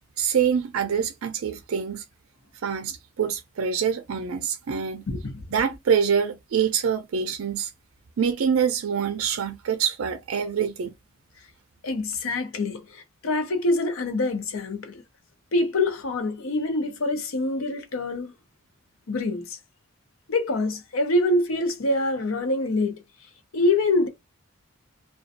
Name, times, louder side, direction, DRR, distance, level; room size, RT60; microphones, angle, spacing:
voice 1, 0.2-2.0 2.6-5.0 5.5-7.7 8.2-10.9, right 7 dB, 90° right, 0.4 m, -25 dB
voice 2, 5.1-5.4 11.8-15.0 15.5-18.3 19.1-19.6 20.3-23.0 23.5-24.1, left 2 dB, 85° left, 0.7 m, -25 dB
2.5 x 2.2 x 2.5 m
head